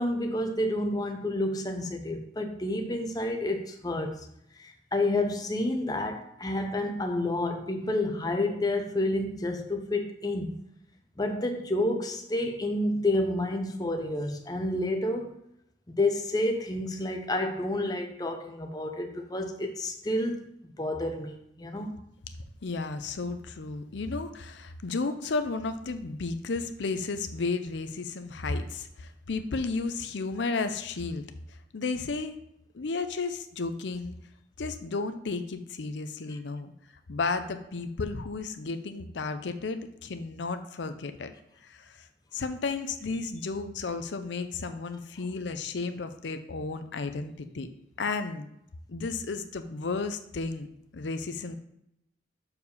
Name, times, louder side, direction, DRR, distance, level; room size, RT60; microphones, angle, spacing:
voice 1, 0.0-4.3 4.6-10.6 11.2-15.3 15.9-20.5 20.8-21.9, left 1 dB, 20° left, 4 dB, 0.7 m, -29 dB
voice 2, 22.6-32.4 32.7-34.2 34.6-36.7 37.1-41.3 41.6-47.7 48.0-48.5 48.9-50.7 50.9-51.6, left 3 dB, 75° left, 9 dB, 0.6 m, -33 dB
6.8 x 4.7 x 5.4 m, 0.77 s
head